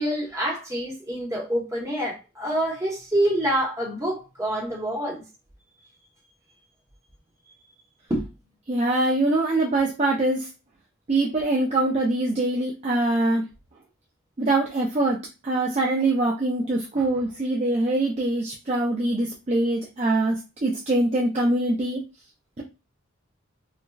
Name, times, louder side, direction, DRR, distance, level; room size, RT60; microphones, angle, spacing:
voice 1, 0.0-5.2 8.1-8.3, right 1 dB, 15° right, 0.9 m, -26 dB
voice 2, 8.7-10.5 11.1-13.4 14.4-15.2 15.4-22.0, right 2 dB, 30° right, 0.4 m, -23 dB
4.4 x 2.1 x 2.3 m
head